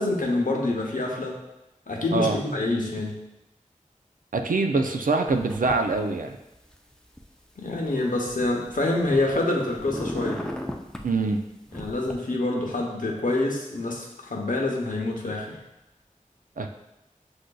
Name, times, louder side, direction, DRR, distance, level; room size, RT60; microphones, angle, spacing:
voice 1, 0.0-1.4 1.9-3.2 7.6-10.4 11.7-15.6, left 2 dB, 85° left, 0 dB, 0.8 m, -26 dB
voice 2, 4.3-6.4 11.0-11.4 16.6-16.7, right 3 dB, 90° right, 5 dB, 0.4 m, -24 dB
sound 1, 5.3-5.9 6.2-7.2 7.8-9.4 9.7-11.1 11.7-12.1, equal, 5° left, 0.4 m, -35 dB
7.6 x 2.5 x 2.3 m, 0.92 s
wide cardioid pair, 45°, 14 cm